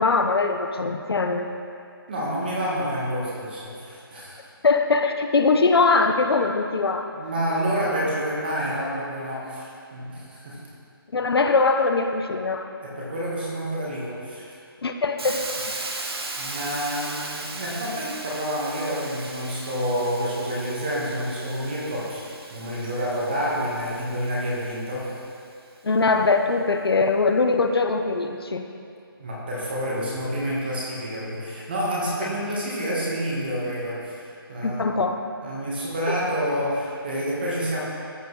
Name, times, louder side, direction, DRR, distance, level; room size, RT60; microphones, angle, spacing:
voice 1, 0.0-1.5 4.6-7.1 11.1-12.7 14.8-15.5 25.8-28.7 34.6-35.2 36.1-36.2, left 4 dB, 75° left, 6 dB, 0.7 m, -21 dB
voice 2, 2.1-4.4 7.1-10.6 12.8-14.5 16.4-25.1 29.2-35.0 35.4-37.8, equal, 25° right, -5 dB, 1.4 m, -28 dB
Hiss, 15.2-25.1, right 2 dB, 80° right, 1.1 m, -37 dB
14.0 x 5.2 x 3.2 m, 2.4 s
hypercardioid pair, 175°, 13 cm